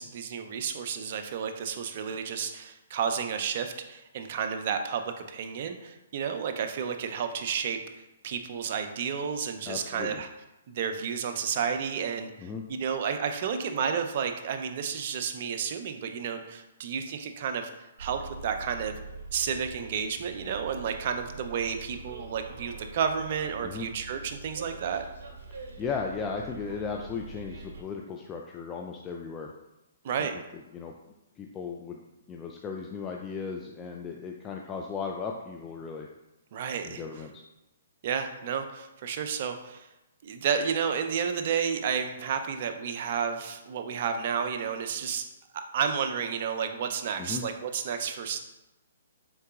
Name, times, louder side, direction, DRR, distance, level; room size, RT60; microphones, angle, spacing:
voice 1, 0.0-7.8 8.2-10.3 10.7-17.7 18.0-19.0 19.3-25.1 30.0-30.3 36.5-37.0 38.0-39.9 40.2-45.2 45.5-48.4, right 7 dB, 50° right, 6 dB, 0.5 m, -31 dB
voice 2, 9.7-10.2 12.4-12.6 23.6-23.9 25.8-29.5 30.2-30.3 30.7-30.9 31.4-36.1 36.8-37.4 47.2-47.4, left 5 dB, 20° left, 1 dB, 0.3 m, -36 dB
Bus, 18.0-27.8, right 3 dB, 70° right, 0.8 m, -44 dB
4.6 x 3.7 x 2.3 m, 0.97 s
hypercardioid pair, 140°, 0 cm